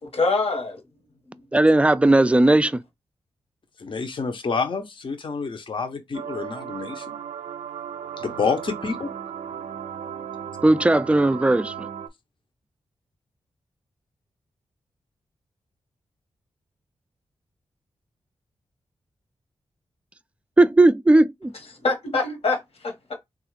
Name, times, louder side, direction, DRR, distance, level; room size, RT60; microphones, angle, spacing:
voice 1, 0.0-0.8 21.8-23.1, left 3 dB, 65° left, 1.2 m, -25 dB
voice 2, 1.5-2.8 10.6-11.9 20.6-21.5, right 2 dB, 10° right, 0.3 m, -17 dB
voice 3, 3.8-7.2 8.2-9.1, left 5 dB, 50° left, 0.7 m, -28 dB
sound 1, 6.1-12.1, right 8 dB, 90° right, 0.4 m, -36 dB
3.2 x 2.4 x 3.1 m
cardioid pair, 50°, 11 cm